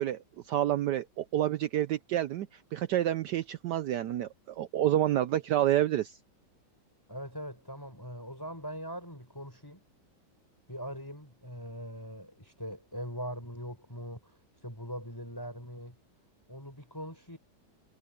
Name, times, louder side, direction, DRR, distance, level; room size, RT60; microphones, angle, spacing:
voice 1, 0.0-6.2, right 12 dB, 70° right, 1.1 m, -29 dB
voice 2, 7.1-9.8 10.7-14.3 14.6-16.0 16.5-17.4, equal, 10° left, 4.6 m, -41 dB
omnidirectional pair, 2.2 m